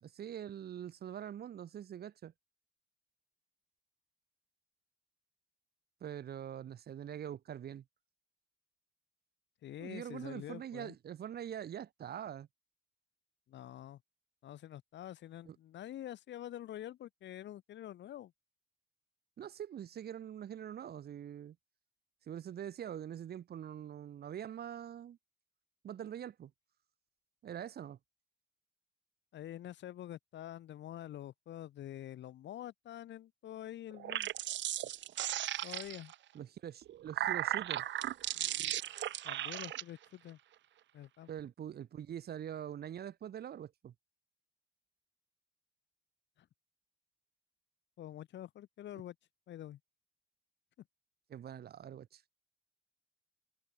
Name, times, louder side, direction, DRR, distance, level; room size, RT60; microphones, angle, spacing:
voice 1, 0.0-2.3 6.0-7.8 9.8-12.5 15.5-15.6 19.4-21.6 22.3-25.2 25.8-26.5 27.4-28.0 36.3-37.8 41.3-43.9 51.3-52.2, right 9 dB, 60° right, 2.0 m, -44 dB
voice 2, 9.6-10.9 13.5-14.0 14.4-18.3 29.3-34.3 35.6-36.1 39.2-40.4 40.9-41.3 48.0-49.1 49.5-49.8, left 12 dB, 80° left, 1.6 m, -46 dB
sound 1, 33.9-36.1 36.8-39.8, right 12 dB, 85° right, 1.4 m, -36 dB
cardioid pair, 150°, 18 cm